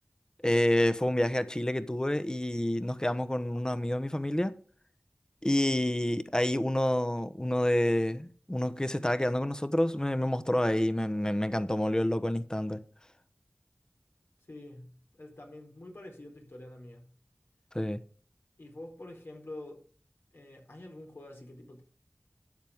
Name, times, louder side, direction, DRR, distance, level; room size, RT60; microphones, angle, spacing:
voice 1, 0.4-4.5 5.4-12.8 17.7-18.0, left 1 dB, 20° left, 1.0 m, -28 dB
voice 2, 14.5-17.1 18.6-19.8 20.3-21.8, left 1 dB, 80° left, 4.3 m, -47 dB
12.5 x 9.2 x 3.6 m
wide cardioid pair, 50°, 4 cm